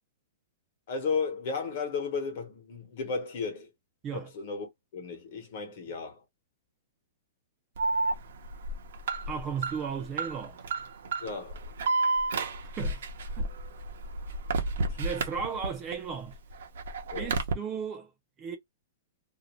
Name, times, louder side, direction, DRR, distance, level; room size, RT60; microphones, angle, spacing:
voice 1, 0.9-3.7 4.1-6.2 11.2-11.6 14.8-15.0 17.1-17.3, left 5 dB, 40° left, 1.0 m, -34 dB
Alarm, 7.8-15.9 16.3-17.5, right 3 dB, 70° right, 0.6 m, -31 dB
voice 2, 9.3-10.6 12.6-13.1 13.4-13.5 15.0-16.4 17.1-18.1 18.4-18.6, right 6 dB, 15° right, 0.3 m, -35 dB
2.5 x 2.1 x 3.0 m
hypercardioid pair, 175°, 0 cm